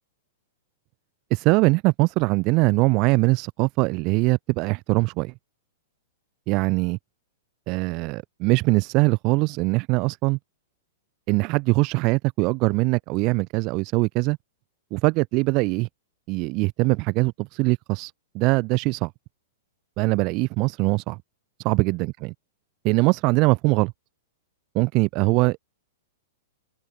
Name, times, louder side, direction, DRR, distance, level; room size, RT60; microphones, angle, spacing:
voice 1, 1.3-5.3 6.5-7.0 7.7-10.4 11.3-14.4 14.9-15.9 16.3-19.1 20.0-21.2 21.6-22.3 22.8-23.9 24.7-25.6, right 26 dB, 40° right, 0.7 m, -22 dB
open air
hypercardioid pair, 135°, 0 cm